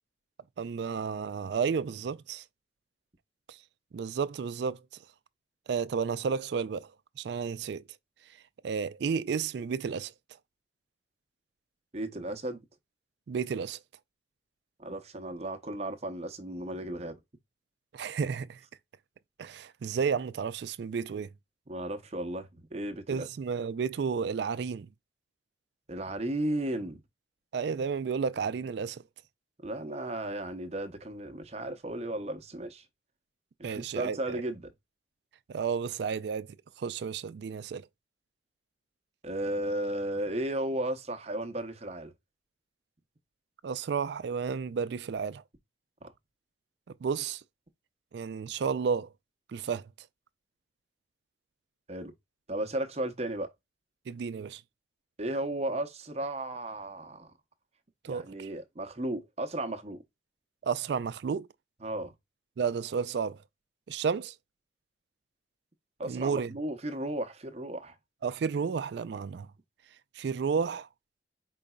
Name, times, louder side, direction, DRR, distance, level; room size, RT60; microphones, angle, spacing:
voice 1, 0.6-2.4 3.5-3.6 3.9-4.8 5.7-6.9 7.2-7.8 8.6-10.1 13.3-13.8 17.9-18.6 19.4-21.3 23.1-24.9 27.5-29.0 33.6-34.4 35.5-36.5 36.8-37.8 43.6-45.4 47.0-47.4 48.1-49.1 49.5-49.9 54.1-54.6 58.0-58.5 60.6-61.5 62.6-63.4 63.9-64.3 66.0-66.5 68.2-69.5 70.2-70.9, right 6 dB, 60° right, 0.3 m, -32 dB
voice 2, 11.9-12.6 14.8-17.2 21.7-23.3 25.9-27.0 29.6-32.8 33.6-34.6 39.2-42.1 46.0-46.1 51.9-52.1 52.5-53.5 55.2-57.3 58.1-60.0 61.8-62.1 66.0-68.0, right 1 dB, 35° right, 0.7 m, -34 dB
5.2 x 3.8 x 2.2 m
head